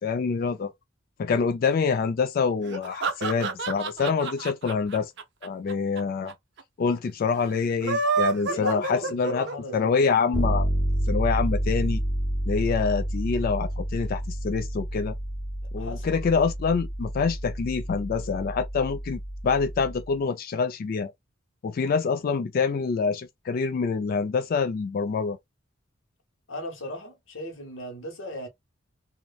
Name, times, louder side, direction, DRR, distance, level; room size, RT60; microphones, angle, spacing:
voice 1, 0.0-0.7 1.2-5.1 5.4-6.3 6.8-9.5 9.7-10.7 11.1-12.0 12.5-15.2 15.7-21.1 21.6-25.4, left 5 dB, 50° left, 0.3 m, -26 dB
sound 1, 2.7-6.0 6.3-6.4 6.6-6.7 7.7-9.8, right 4 dB, 60° right, 0.5 m, -28 dB
voice 2, 8.5-10.1 15.8-16.1 26.5-28.5, left 1 dB, 75° left, 0.9 m, -36 dB
Bass guitar, 10.3-20.1, right 1 dB, 15° left, 0.8 m, -29 dB
2.8 x 2.1 x 2.2 m
head